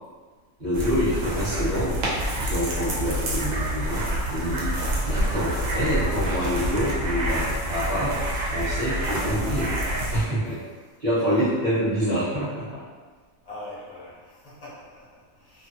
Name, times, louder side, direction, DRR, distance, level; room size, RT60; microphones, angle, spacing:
voice 1, 0.6-2.0 2.4-4.7 5.0-9.7 10.1-10.6 11.0-12.8, equal, 35° right, -11 dB, 1.0 m, -26 dB
sound 1, 0.7-10.2, right 1 dB, 70° right, 1.0 m, -27 dB
voice 2, 13.4-15.7, left 1 dB, 35° left, -9 dB, 0.7 m, -42 dB
2.6 x 2.4 x 2.6 m, 1.4 s
omnidirectional pair, 1.6 m